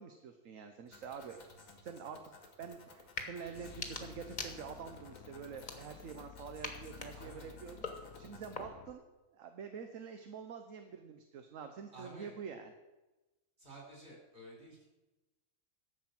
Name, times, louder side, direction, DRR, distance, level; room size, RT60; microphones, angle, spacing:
voice 1, 0.0-1.5 1.8-9.0 9.3-12.7, right 6 dB, 70° right, 6 dB, 1.2 m, -47 dB
sound 1, 0.9-8.6, left 2 dB, 90° left, 2.0 m, -57 dB
sound 2, 3.0-3.3 3.7-5.0 5.5-6.2 6.6-9.0, left 3 dB, 35° left, 1.3 m, -45 dB
sound 3, 3.5-8.9, left 9 dB, 70° left, 1.1 m, -54 dB
voice 2, 7.1-7.5 11.9-12.3 13.6-14.8, right 1 dB, 40° right, -3 dB, 4.9 m, -52 dB
11.5 x 7.5 x 6.0 m, 1.1 s
omnidirectional pair, 1.4 m